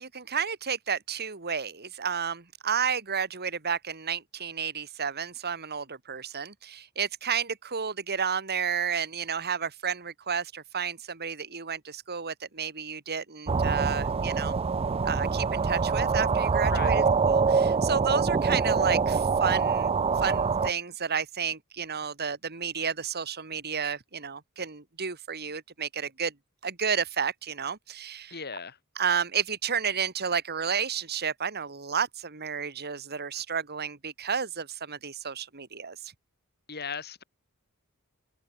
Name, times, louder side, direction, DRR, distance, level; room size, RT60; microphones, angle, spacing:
voice 1, 0.0-14.6 15.0-26.3 26.6-28.4 29.0-36.1, right 6 dB, 45° right, 2.3 m, -31 dB
sound 1, 13.5-20.7, right 5 dB, 25° right, 0.4 m, -25 dB
voice 2, 16.7-17.1 28.3-28.7 36.7-37.2, left 5 dB, 50° left, 3.5 m, -37 dB
head